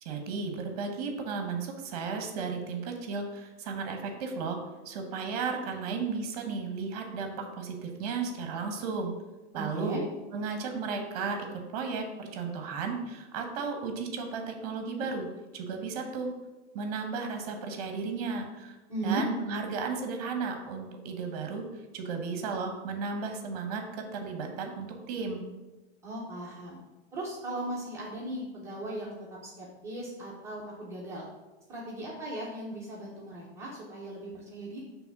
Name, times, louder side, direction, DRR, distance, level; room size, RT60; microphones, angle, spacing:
voice 1, 0.0-4.6 4.8-9.1 9.5-10.0 10.3-15.3 15.5-16.3 16.7-18.7 19.0-21.7 21.9-23.8 24.1-25.5, right 4 dB, 35° right, 4 dB, 1.0 m, -34 dB
voice 2, 9.5-10.0 18.9-19.2 26.0-26.8 27.1-29.2 29.4-31.3 31.7-34.8, right 2 dB, 10° right, -6 dB, 0.8 m, -37 dB
6.9 x 3.4 x 5.9 m, 1.1 s
supercardioid pair, 170°, 35 cm